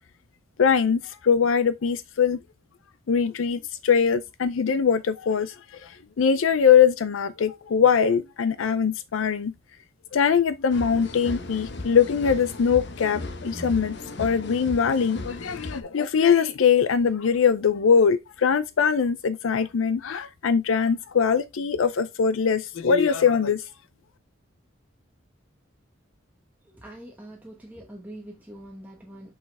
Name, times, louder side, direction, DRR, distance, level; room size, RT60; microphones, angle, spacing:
voice 1, 0.6-2.4 3.1-5.5 5.8-5.9 6.2-9.5 10.1-23.6, left 6 dB, 80° left, 0.5 m, -22 dB
sound 1, 10.7-15.8, left 2 dB, 60° left, 1.0 m, -36 dB
voice 2, 26.7-29.3, right 1 dB, 10° right, 1.0 m, -43 dB
6.3 x 5.6 x 3.4 m
head